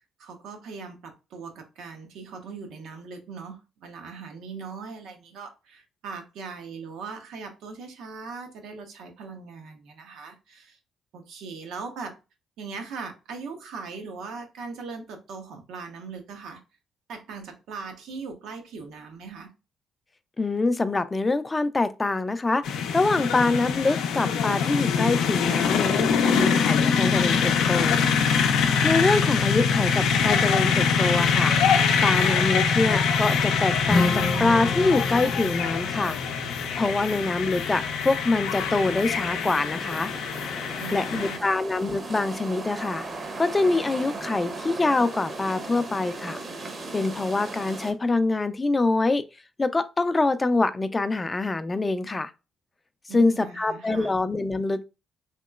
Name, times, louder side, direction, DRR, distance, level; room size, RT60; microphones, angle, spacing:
voice 1, 0.2-10.8 11.1-12.1 12.6-16.6 17.1-19.5 40.8-41.6 53.1-54.1, right 4 dB, 85° right, 0.7 m, -40 dB
voice 2, 20.4-28.0 28.8-31.5 32.0-36.2 36.8-40.1 40.9-43.1 43.4-46.4 46.9-49.2 49.6-52.3 53.1-54.8, left 3 dB, 25° left, 0.3 m, -25 dB
sound 1, 22.6-41.4, left 6 dB, 85° left, 0.4 m, -24 dB
Strum, 33.9-40.1, left 3 dB, 45° left, 0.8 m, -32 dB
sound 2, 38.6-47.9, right 2 dB, 40° right, 0.7 m, -37 dB
2.9 x 2.9 x 2.2 m
cardioid pair, 90°, 0 cm